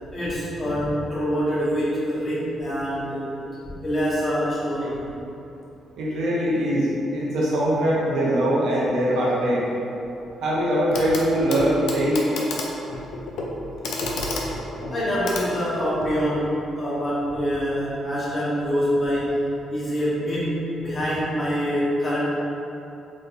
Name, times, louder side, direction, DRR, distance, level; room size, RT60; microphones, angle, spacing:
voice 1, 0.1-3.3 3.8-5.0 10.9-11.1 14.9-19.4 19.7-22.2, equal, 30° left, -10 dB, 1.5 m, -25 dB
voice 2, 6.0-9.6 10.4-12.2, equal, 80° right, -6 dB, 0.9 m, -22 dB
Clock, 10.9-11.2 11.5-16.2 17.4-17.5, left 2 dB, 80° left, 0.5 m, -30 dB
4.1 x 3.1 x 2.6 m, 2.9 s
cardioid pair, 90°, 0 cm